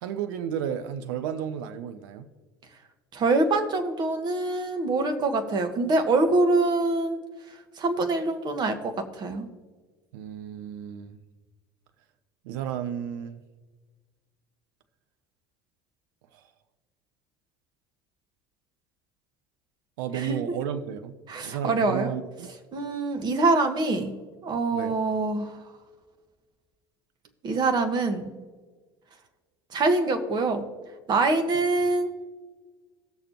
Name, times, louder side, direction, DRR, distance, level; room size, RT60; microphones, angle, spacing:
voice 1, 0.0-2.3 10.1-11.2 12.4-13.4 16.3-16.4 20.0-21.2 21.4-22.5 24.7-24.9, right 9 dB, 65° right, 0.7 m, -33 dB
voice 2, 3.1-7.2 7.8-9.5 20.1-20.4 21.3-22.1 22.7-24.1 24.4-25.6 27.4-28.3 29.7-30.6 31.1-32.1, right 3 dB, 35° right, 1.5 m, -24 dB
17.5 x 6.6 x 3.0 m
figure-of-eight pair, 70°, 12 cm